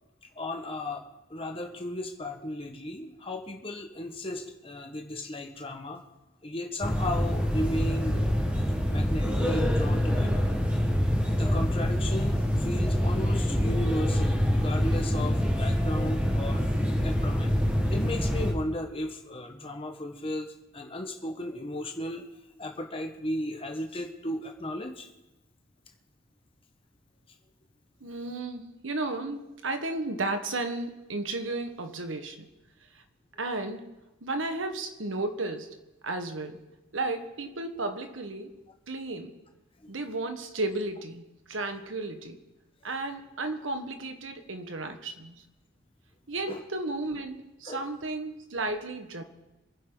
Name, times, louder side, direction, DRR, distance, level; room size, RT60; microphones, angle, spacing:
voice 1, 0.4-1.0 1.3-6.0 6.4-8.2 8.9-10.4 11.3-16.6 17.0-17.6 17.9-22.3 22.6-25.1 39.8-39.9 46.5-46.6 47.7-47.8, left 1 dB, 30° left, 3 dB, 1.5 m, -35 dB
sound 1, 6.8-18.5, equal, 5° right, 1.6 m, -26 dB
voice 2, 28.0-32.5 32.9-33.0 33.4-33.9 34.2-35.8 36.0-36.7 36.9-38.5 38.9-39.3 39.9-42.4 42.8-45.4 46.3-49.2, right 2 dB, 85° right, 7 dB, 1.6 m, -33 dB
26.5 x 9.9 x 4.0 m, 1.0 s
head